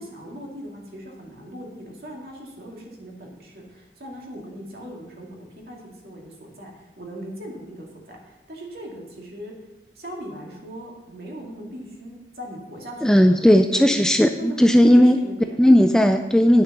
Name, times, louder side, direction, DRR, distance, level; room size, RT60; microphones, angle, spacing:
voice 1, 0.0-9.5 9.9-13.4 13.7-13.9 14.4-15.6 15.9-16.0, equal, 55° right, -1 dB, 2.3 m, -39 dB
voice 2, 13.0-15.2 15.6-16.6, equal, 5° left, 6 dB, 0.3 m, -16 dB
9.6 x 6.7 x 6.0 m, 1.0 s
head